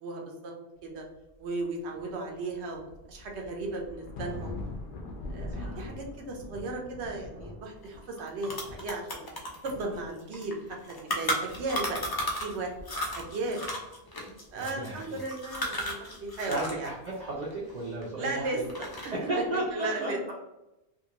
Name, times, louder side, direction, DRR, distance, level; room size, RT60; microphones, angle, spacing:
voice 1, 0.0-0.5 0.8-1.1 1.4-4.5 5.3-9.3 9.6-12.7 13.1-13.6 14.5-16.9 18.2-18.6 19.0-19.4 19.7-20.2, right 2 dB, 85° right, 1 dB, 0.9 m, -36 dB
sound 1, 1.1-1.2 1.6-9.3 9.6-11.1 11.4-14.0 14.3-19.1 19.4-19.7, left 2 dB, 60° left, 0.7 m, -44 dB
sound 2, 7.8-7.9 8.2-12.6 12.8-16.9 17.1-18.3 18.6-19.3, equal, 40° left, 0.3 m, -34 dB
voice 2, 14.7-15.2 16.5-18.5 19.1-20.1, right 2 dB, 50° right, -5 dB, 0.6 m, -33 dB
2.6 x 2.5 x 2.8 m, 0.96 s
omnidirectional pair, 1.1 m